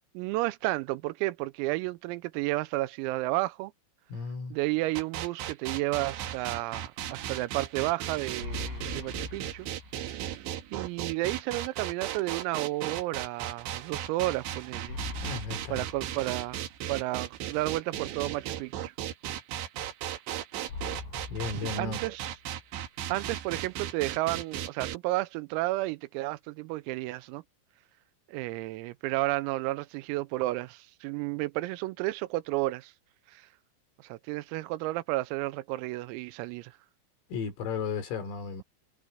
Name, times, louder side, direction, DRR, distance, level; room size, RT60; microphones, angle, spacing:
voice 1, 0.2-3.7 4.5-9.7 10.7-15.0 15.7-18.9 21.5-22.3 23.1-27.4 28.3-32.9 33.3-33.5 34.0-36.7, right 19 dB, 90° right, 3.6 m, -32 dB
voice 2, 4.1-4.6 15.2-15.9 21.3-22.0 37.3-38.6, left 5 dB, 75° left, 7.0 m, -34 dB
sound 1, 5.0-25.0, right 11 dB, 70° right, 3.4 m, -36 dB
sound 2, 8.4-10.4 10.8-10.9 14.9-16.9 20.7-22.7, left 4 dB, 55° left, 10.0 m, -42 dB
omnidirectional pair, 6.0 m